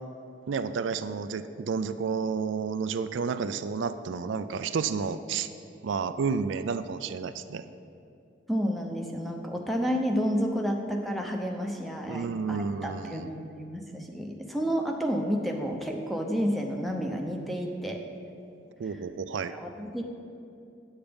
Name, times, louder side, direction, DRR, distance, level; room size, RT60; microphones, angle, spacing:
voice 1, 0.5-5.5 5.8-7.6 12.1-13.4 18.8-19.5, right 5 dB, 80° right, 11 dB, 0.4 m, -31 dB
voice 2, 8.5-18.0 19.5-20.0, equal, ahead, 2 dB, 0.7 m, -30 dB
8.9 x 8.0 x 5.2 m, 2.7 s
head